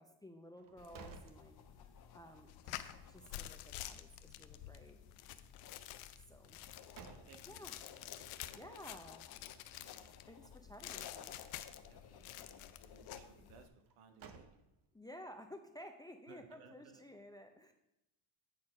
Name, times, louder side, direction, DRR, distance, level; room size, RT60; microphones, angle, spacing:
voice 1, 0.0-5.0 6.3-6.6 7.4-7.8 8.5-9.2 10.3-11.3 14.9-17.7, equal, 10° left, 6 dB, 0.4 m, -54 dB
sound 1, 0.5-2.2 2.6-2.7 6.5-7.7 13.8-15.1, right 5 dB, 40° right, 0.8 m, -56 dB
sound 2, 0.8-13.7, left 7 dB, 50° left, 0.8 m, -57 dB
sound 3, 2.5-10.3 10.8-11.9 12.2-13.2, left 13 dB, 85° left, 0.6 m, -49 dB
voice 2, 6.5-7.5 8.0-8.6 9.5-10.1 10.8-11.1 11.7-13.7 14.0-14.5 16.3-17.0, right 6 dB, 80° right, 7 dB, 1.2 m, -63 dB
8.8 x 4.2 x 5.4 m, 0.87 s
cardioid pair, 120°, 49 cm